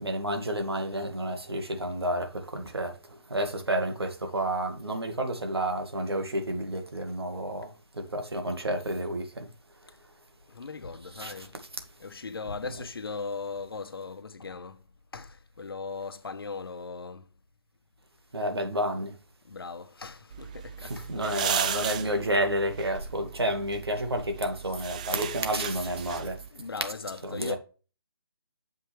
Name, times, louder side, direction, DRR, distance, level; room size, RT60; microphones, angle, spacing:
voice 1, 0.0-9.5 11.1-11.5 18.3-19.1 20.8-26.4 27.2-27.6, right 1 dB, 90° right, 2.1 m, -30 dB
voice 2, 10.5-11.6 12.0-14.8 15.1-17.2 19.4-21.9 26.5-27.6, left 4 dB, 70° left, 1.0 m, -38 dB
sound 1, 20.3-26.5, right 8 dB, 20° right, 0.4 m, -36 dB
7.2 x 5.9 x 3.4 m
figure-of-eight pair, 160°, 13 cm